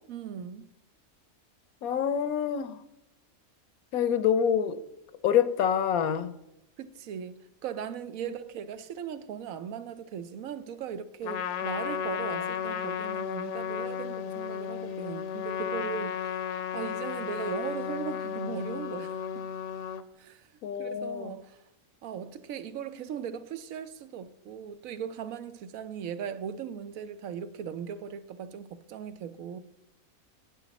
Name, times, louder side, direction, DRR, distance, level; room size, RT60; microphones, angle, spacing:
voice 1, 0.1-0.7 6.8-16.4 16.7-19.5 20.2-20.5 20.8-21.6 22.0-29.6, right 8 dB, 75° right, 1.0 m, -38 dB
voice 2, 1.8-2.8 3.9-4.8 5.2-6.3 8.2-8.3 20.6-21.3, left 8 dB, 80° left, 1.2 m, -26 dB
Trumpet, 11.2-20.0, left 8 dB, 65° left, 0.9 m, -34 dB
9.9 x 9.1 x 4.1 m
omnidirectional pair, 1.5 m